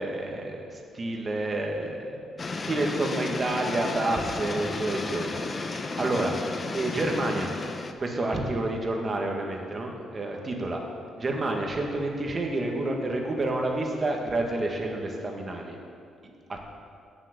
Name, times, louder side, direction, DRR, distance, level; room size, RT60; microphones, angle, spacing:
voice 1, 0.0-2.2 2.6-7.5 8.0-10.8 11.2-15.8 16.5-16.6, right 2 dB, 35° right, 1 dB, 1.8 m, -29 dB
sound 1, 2.4-7.9, left 3 dB, 35° left, 0.8 m, -33 dB
9.0 x 8.0 x 6.8 m, 2.3 s
cardioid pair, 90°, 0 cm